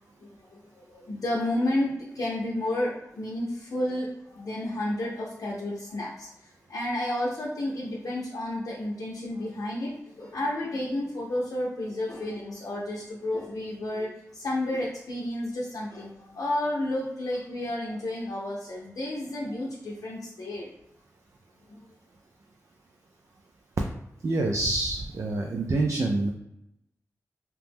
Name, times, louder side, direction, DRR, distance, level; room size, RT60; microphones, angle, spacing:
voice 1, 0.2-6.3 6.7-9.9 10.2-20.7, left 1 dB, 75° left, -5 dB, 0.6 m, -31 dB
voice 2, 24.2-26.3, right 2 dB, 60° right, 1 dB, 0.4 m, -26 dB
2.9 x 2.0 x 3.4 m, 0.84 s
cardioid pair, 50°, 6 cm